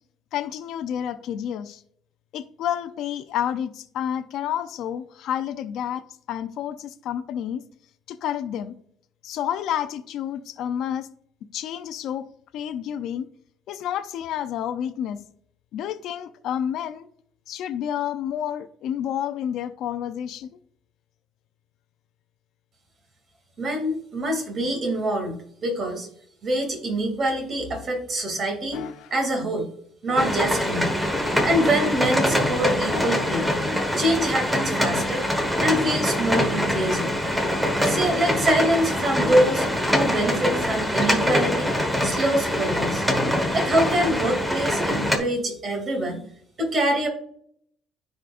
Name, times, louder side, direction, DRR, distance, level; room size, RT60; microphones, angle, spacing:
voice 1, 0.3-1.8 2.3-6.0 6.3-7.6 8.1-8.7 9.2-11.1 11.5-12.2 12.5-13.3 13.7-15.2 15.7-17.1 17.5-20.5, left 10 dB, 65° left, 0.6 m, -29 dB
voice 2, 23.6-26.1 26.4-29.7 30.0-30.9 31.4-33.5 34.0-35.3 35.6-37.1 37.8-41.7 42.0-43.0 43.5-46.2 46.6-47.1, right 1 dB, 35° right, 2.8 m, -25 dB
sound 1, 28.7-29.2 30.1-30.6 31.5-32.2 32.9-33.5 34.2-34.4, left 6 dB, 85° left, 1.0 m, -40 dB
sound 2, 30.2-45.2, left 1 dB, 5° right, 1.4 m, -24 dB
14.0 x 5.1 x 2.6 m
cardioid pair, 145°, 0 cm